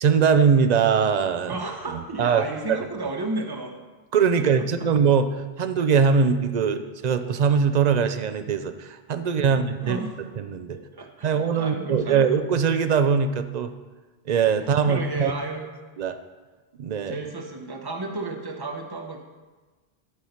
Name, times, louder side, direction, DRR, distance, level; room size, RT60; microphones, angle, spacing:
voice 1, 0.0-1.5 2.2-2.4 2.7-2.8 4.1-10.0 10.4-10.8 11.2-13.7 14.3-15.3 16.0-16.2 16.8-17.2, right 6 dB, 50° right, 10 dB, 0.6 m, -21 dB
voice 2, 1.5-3.8 4.4-4.7 9.2-10.2 10.7-12.3 14.8-15.7 17.1-19.2, right 2 dB, 25° right, 3 dB, 1.0 m, -33 dB
13.0 x 4.8 x 5.6 m, 1.3 s
omnidirectional pair, 1.0 m